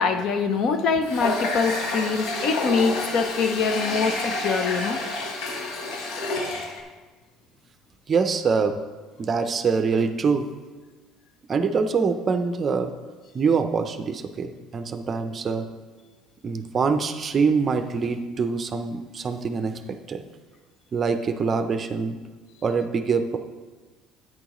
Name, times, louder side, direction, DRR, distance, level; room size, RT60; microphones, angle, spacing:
voice 1, 0.0-5.0, left 5 dB, 50° left, 9 dB, 0.7 m, -24 dB
Water tap faucet, 1.0-6.8, left 2 dB, 65° left, 1.2 m, -29 dB
voice 2, 8.1-8.8 9.2-10.5 11.5-12.9 13.3-15.7 16.4-20.2 20.9-22.2 22.6-23.4, right 5 dB, 30° right, 8 dB, 0.5 m, -24 dB
10.0 x 8.8 x 3.0 m, 1.3 s
cardioid pair, 145°, 0 cm